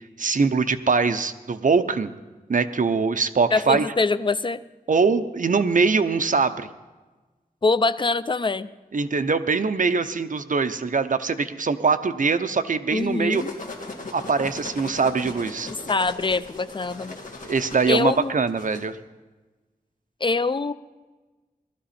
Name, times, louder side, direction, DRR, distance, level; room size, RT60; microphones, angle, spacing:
voice 1, 0.2-2.1 2.5-3.9 4.9-6.7 8.9-13.4 14.1-15.7 17.4-19.0, right 4 dB, 55° right, 10 dB, 0.8 m, -22 dB
voice 2, 3.5-4.6 7.6-8.7 12.9-13.5 15.9-17.2 17.9-18.3 20.2-20.7, left 3 dB, 30° left, 14 dB, 0.5 m, -24 dB
sound 1, 13.0-18.9, left 2 dB, 55° left, 2.3 m, -38 dB
18.5 x 12.5 x 4.3 m, 1.2 s
wide cardioid pair, 70°, 16 cm